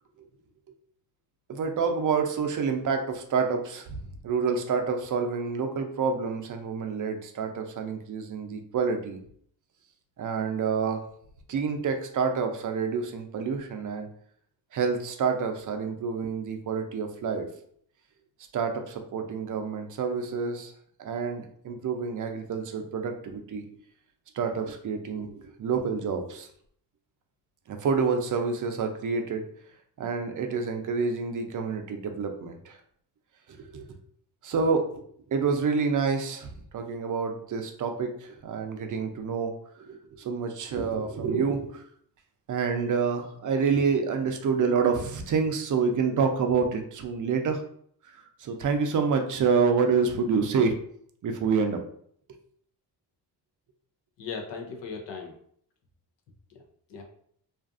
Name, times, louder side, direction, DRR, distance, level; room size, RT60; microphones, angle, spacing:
voice 1, 1.5-9.2 10.2-11.1 11.5-14.1 14.7-17.5 18.5-20.7 21.0-23.6 24.3-26.5 27.7-29.5 30.0-32.8 33.5-33.8 34.4-35.0 35.3-36.5 36.7-41.8 42.5-47.6 48.4-50.8 51.2-51.8, right 5 dB, 50° right, 5 dB, 0.5 m, -28 dB
voice 2, 54.2-55.4 56.5-56.6 56.9-57.0, left 5 dB, 80° left, 3 dB, 0.7 m, -38 dB
2.5 x 2.4 x 2.4 m, 0.62 s
cardioid pair, 85°, 42 cm